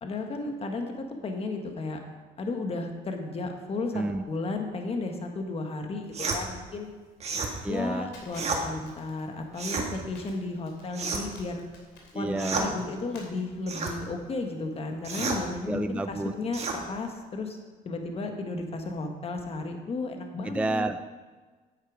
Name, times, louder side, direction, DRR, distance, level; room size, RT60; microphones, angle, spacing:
voice 1, 0.0-2.0 2.4-6.9 7.7-11.7 12.1-17.6 17.8-20.9, left 3 dB, 35° left, 4 dB, 1.4 m, -34 dB
voice 2, 3.9-4.2 7.6-8.1 12.1-12.8 15.7-16.3 20.4-21.0, right 2 dB, 5° right, 9 dB, 0.4 m, -30 dB
sound 1, 6.1-6.4 7.2-7.5 8.3-8.6 9.5-9.9 10.9-11.4 12.4-12.7 13.7-14.0 15.0-15.4 16.5-16.8, right 4 dB, 40° right, 1.7 m, -30 dB
Crackle, 8.1-13.3, left 3 dB, 85° left, 2.9 m, -48 dB
9.6 x 8.8 x 4.9 m, 1.4 s
cardioid pair, 110°, 17 cm